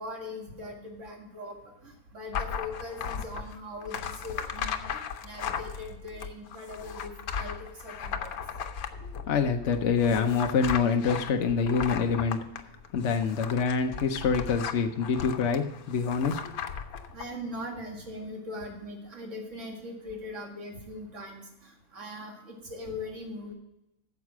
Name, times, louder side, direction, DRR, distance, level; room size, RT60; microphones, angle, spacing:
voice 1, 0.0-1.6 1.8-7.1 7.4-8.3 17.1-23.5, left 1 dB, 55° right, 1 dB, 2.3 m, -40 dB
sound 1, 2.3-17.3, left 7 dB, 80° left, 1.3 m, -36 dB
voice 2, 9.0-12.4 12.9-16.5, left 5 dB, 60° left, 4 dB, 1.0 m, -26 dB
9.3 x 7.4 x 6.0 m, 0.85 s
omnidirectional pair, 1.5 m